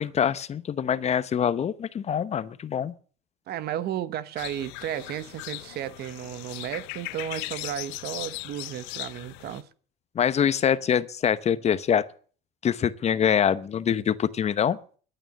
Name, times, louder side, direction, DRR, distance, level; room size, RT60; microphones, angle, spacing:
voice 1, 0.0-2.9 10.1-12.0 12.6-14.8, left 8 dB, 35° left, 0.9 m, -24 dB
voice 2, 3.5-9.7, right 11 dB, 60° right, 1.1 m, -33 dB
sound 1, 4.4-9.6, left 23 dB, 75° left, 0.6 m, -38 dB
12.5 x 9.0 x 9.5 m
supercardioid pair, 110°, 19 cm